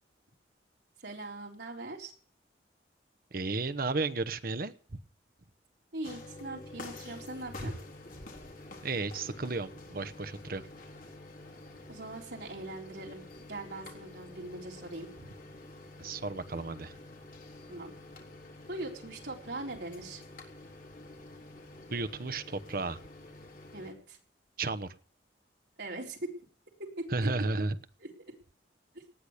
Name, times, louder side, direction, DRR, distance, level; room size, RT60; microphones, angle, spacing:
voice 1, 1.0-2.1 5.9-7.7 11.9-13.2 13.5-15.1 17.7-17.9 18.7-20.2 23.7-24.2 25.8-26.2 26.8-27.3 28.0-28.1 28.9-29.0, right 2 dB, 70° right, 0 dB, 4.0 m, -41 dB
voice 2, 3.3-5.0 8.8-10.6 16.0-17.0 21.9-23.0 24.6-24.9 27.1-27.8, right 3 dB, 50° right, 12 dB, 1.0 m, -33 dB
sound 1, 6.0-23.9, left 1 dB, 50° left, 3.8 m, -48 dB
18.5 x 10.0 x 6.5 m, 0.44 s
head